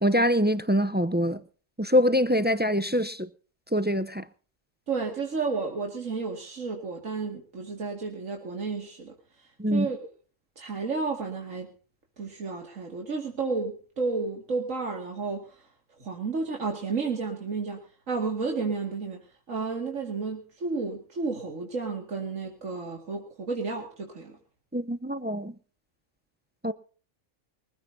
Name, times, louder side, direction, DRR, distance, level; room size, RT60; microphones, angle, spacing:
voice 1, 0.0-1.4 1.8-3.3 3.7-4.2 9.6-9.9 24.7-25.5 26.6-26.7, equal, 15° right, 0.4 m, -24 dB
voice 2, 4.9-9.1 9.7-10.0 10.6-11.7 12.2-15.4 16.0-17.8 18.1-19.2 19.5-24.3, right 4 dB, 85° right, 2.7 m, -31 dB
23.5 x 15.5 x 2.8 m
omnidirectional pair, 1.3 m